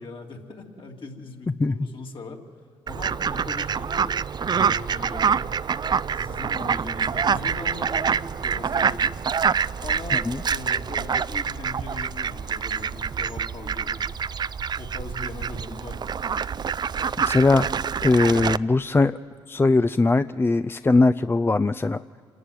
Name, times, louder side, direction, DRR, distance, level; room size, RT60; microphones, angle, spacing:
voice 1, 0.0-2.4 2.8-5.5 6.1-9.2 9.8-14.1 14.8-16.1, left 3 dB, 50° left, 1 dB, 3.0 m, -39 dB
Fowl, 2.9-18.6, right 6 dB, 40° right, 0.5 m, -26 dB
voice 2, 10.1-10.4 17.2-17.7 18.0-19.2 19.5-22.0, left 3 dB, 20° left, 11 dB, 0.4 m, -20 dB
27.0 x 11.0 x 9.4 m, 2.3 s
supercardioid pair, 60°, 11 cm